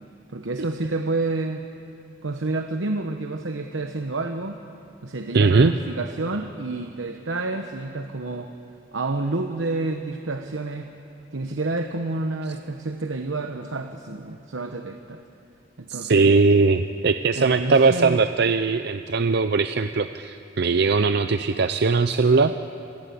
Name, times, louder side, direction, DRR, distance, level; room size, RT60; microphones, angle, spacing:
voice 1, 0.3-1.6 2.2-4.6 5.0-8.5 8.9-10.9 11.3-15.2 15.8-16.4 17.4-18.2, right 2 dB, 85° right, 6 dB, 1.0 m, -29 dB
voice 2, 5.3-5.7 15.9-22.5, right 4 dB, 60° right, 10 dB, 0.6 m, -20 dB
26.5 x 17.5 x 8.5 m, 2.7 s
head